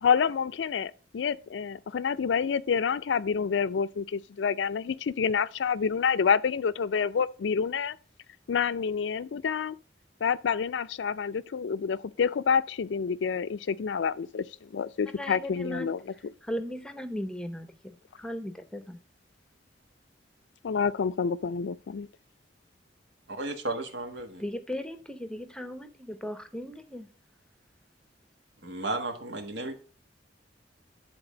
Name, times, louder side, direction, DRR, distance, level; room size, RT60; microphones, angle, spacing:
voice 1, 0.0-8.0 8.5-9.8 10.2-16.1 20.6-22.1, left 6 dB, 85° left, 0.4 m, -28 dB
voice 2, 15.2-15.9 16.5-19.0 24.4-27.1, equal, 5° left, 0.7 m, -37 dB
voice 3, 23.3-24.4 28.6-29.7, right 2 dB, 80° right, 1.6 m, -34 dB
10.5 x 4.0 x 5.1 m
head